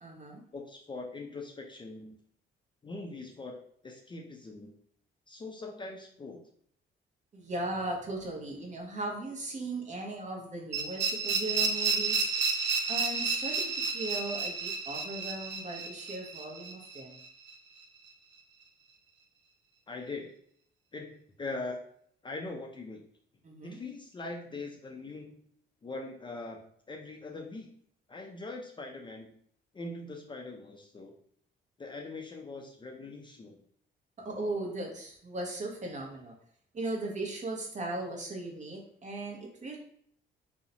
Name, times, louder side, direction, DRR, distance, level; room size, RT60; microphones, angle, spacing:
voice 1, 0.0-0.4 7.3-12.3 12.9-17.2 23.4-23.8 34.2-36.3 36.7-39.8, right 2 dB, 40° right, 0 dB, 0.7 m, -37 dB
voice 2, 0.5-2.2 2.8-4.8 5.3-6.4 19.9-20.3 20.9-21.8 22.2-23.0 23.6-25.4 25.8-27.7 28.1-29.3 29.7-31.1 31.8-33.6, left 3 dB, 25° left, 0 dB, 0.4 m, -42 dB
sound 1, 10.7-17.5, right 5 dB, 65° right, 0.4 m, -31 dB
2.5 x 2.0 x 2.7 m, 0.63 s
cardioid pair, 90°, 20 cm